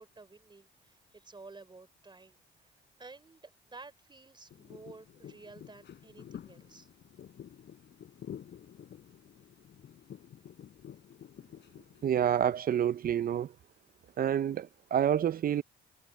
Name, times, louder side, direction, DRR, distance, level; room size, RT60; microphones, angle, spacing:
voice 1, 0.0-2.7 3.0-6.9, right 3 dB, 25° right, 3.9 m, -52 dB
sound 1, 4.5-12.5, left 9 dB, 65° left, 5.2 m, -50 dB
voice 2, 12.0-13.5 14.2-15.6, right 9 dB, 50° right, 0.6 m, -28 dB
cardioid pair, 90°, 20 cm